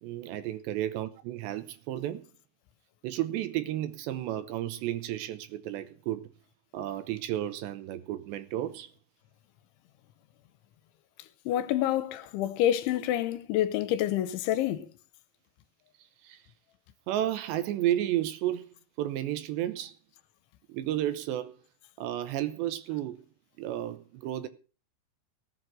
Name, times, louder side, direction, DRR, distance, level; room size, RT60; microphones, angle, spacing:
voice 1, 0.0-2.2 3.0-6.3 6.7-8.9 16.2-16.4 17.1-18.7 19.0-20.0 20.7-21.6 22.0-23.2 23.6-24.5, right 12 dB, 80° right, 2.9 m, -32 dB
voice 2, 11.5-14.9, left 12 dB, 80° left, 3.2 m, -27 dB
18.5 x 8.1 x 6.4 m
omnidirectional pair, 5.6 m